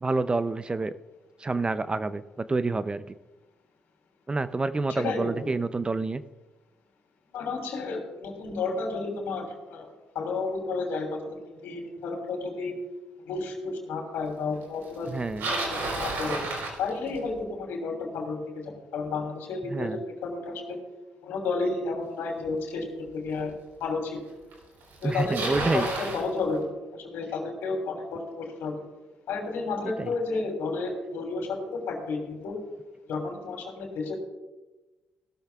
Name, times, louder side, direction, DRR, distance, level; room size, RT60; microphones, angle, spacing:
voice 1, 0.0-0.9 1.4-2.2 2.5-3.0 4.3-6.2 15.1-15.5 19.7-20.0 25.0-25.9 30.0-30.1, right 3 dB, 25° right, 13 dB, 0.6 m, -28 dB
voice 2, 5.0-5.4 7.3-12.7 13.3-15.1 15.6-16.4 16.8-20.8 21.2-23.5 23.8-24.2 25.0-28.8 29.3-32.6 33.1-34.2, left 3 dB, 80° left, 2 dB, 3.1 m, -32 dB
Bicycle, 15.0-17.4 22.4-22.5 23.4-23.5 24.5-24.6 24.8-26.3, right 2 dB, 75° right, 4.1 m, -31 dB
17.0 x 12.5 x 2.4 m, 1.1 s
supercardioid pair, 65°, 4 cm